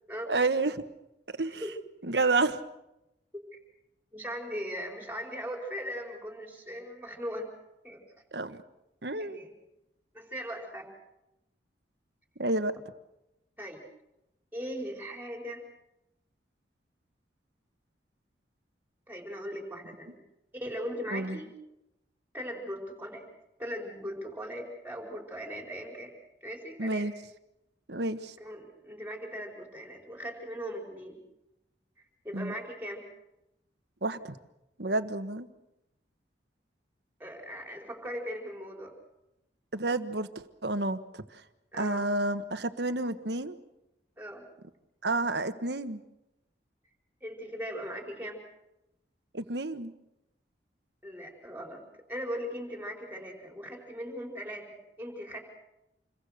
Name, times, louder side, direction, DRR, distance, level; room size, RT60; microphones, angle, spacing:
voice 1, 0.3-0.8 1.4-1.6 2.0-2.6 8.3-8.6 9.0-9.4 12.4-12.7 21.1-21.4 26.8-27.1 27.9-28.3 32.3-32.5 34.0-34.3 34.8-35.5 39.7-41.4 41.8-43.6 45.0-46.0 49.3-49.9, right 2 dB, 65° right, 9 dB, 1.5 m, -30 dB
voice 2, 4.1-7.5 7.8-8.0 9.2-9.5 10.1-10.9 13.6-13.8 14.5-15.6 19.1-20.2 20.5-21.5 22.3-23.2 23.6-26.1 26.4-27.1 28.4-31.2 32.0-33.0 37.2-38.9 41.7-42.1 44.2-44.4 47.2-48.4 51.0-55.4, equal, 10° right, 1 dB, 4.8 m, -39 dB
28.0 x 22.5 x 6.7 m, 0.91 s
head